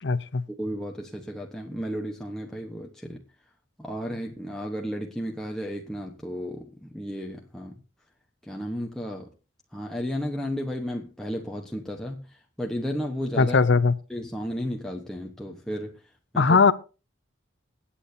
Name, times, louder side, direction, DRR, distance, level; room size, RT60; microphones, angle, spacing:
voice 1, 0.0-0.4 13.4-13.9 16.4-16.7, left 4 dB, 65° left, 0.7 m, -19 dB
voice 2, 0.6-3.2 3.8-7.8 8.4-9.3 9.7-13.6 14.1-16.0 16.3-16.6, equal, 5° left, 1.1 m, -33 dB
21.5 x 8.6 x 2.8 m
head